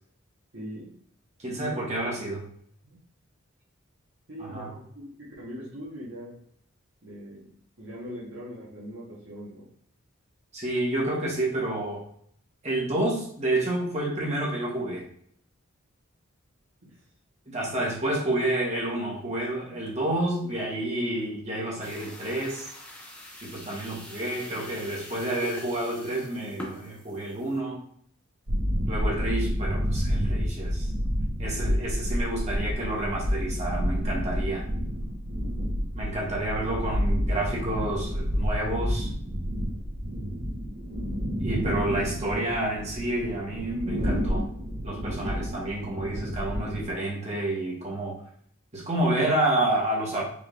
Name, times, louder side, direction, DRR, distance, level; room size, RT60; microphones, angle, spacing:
voice 1, 0.5-0.9 1.4-1.8 4.3-6.4 7.0-9.7 16.8-16.9, equal, 60° right, -8 dB, 1.4 m, -41 dB
voice 2, 1.4-2.4 4.4-4.7 10.5-12.0 12.6-15.0 17.5-22.7 23.4-27.8 28.9-30.9 31.4-34.6 35.9-39.1 41.4-44.5 44.8-48.2 48.7-50.2, right 1 dB, 30° right, -4 dB, 1.3 m, -29 dB
sound 1, 21.8-27.6, left 1 dB, 5° left, 0.6 m, -43 dB
sound 2, 28.5-46.9, equal, 85° right, 1.3 m, -29 dB
5.1 x 3.5 x 2.5 m, 0.63 s
head